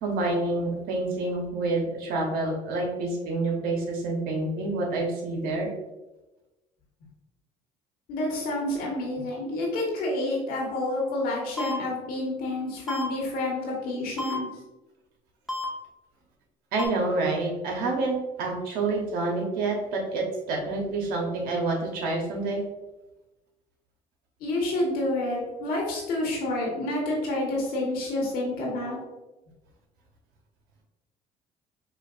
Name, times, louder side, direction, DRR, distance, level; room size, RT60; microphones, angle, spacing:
voice 1, 0.0-5.7 16.7-22.6, right 2 dB, 75° right, 0 dB, 1.0 m, -28 dB
voice 2, 8.1-14.5 24.4-29.0, left 1 dB, 75° left, -2 dB, 1.5 m, -29 dB
sound 1, 11.6-11.7 12.9-13.0 14.2-14.3 15.5-15.6 16.8-16.9, left 2 dB, ahead, 1.1 m, -31 dB
4.9 x 2.5 x 2.5 m, 1.0 s
supercardioid pair, 80°, 15 cm